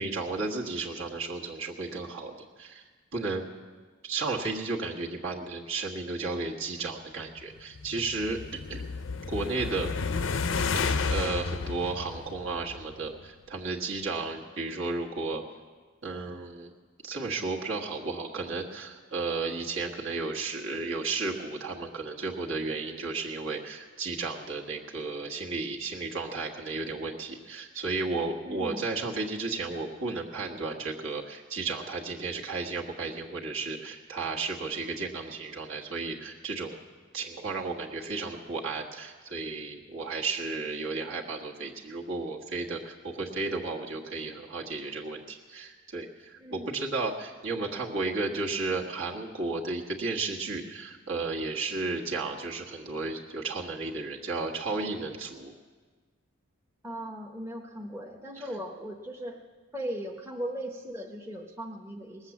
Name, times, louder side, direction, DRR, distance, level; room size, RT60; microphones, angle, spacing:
voice 1, 0.0-2.8 3.1-3.5 4.0-8.8 9.3-9.9 10.7-15.4 16.0-16.7 17.0-36.8 37.1-55.5, right 3 dB, 65° right, -1 dB, 1.5 m, -33 dB
sound 1, 7.6-13.1, left 4 dB, 60° left, 0.6 m, -32 dB
voice 2, 28.4-28.8 46.4-46.8 56.8-59.4 59.7-62.3, equal, 10° right, 1 dB, 0.8 m, -38 dB
19.5 x 8.0 x 7.1 m, 1.4 s
head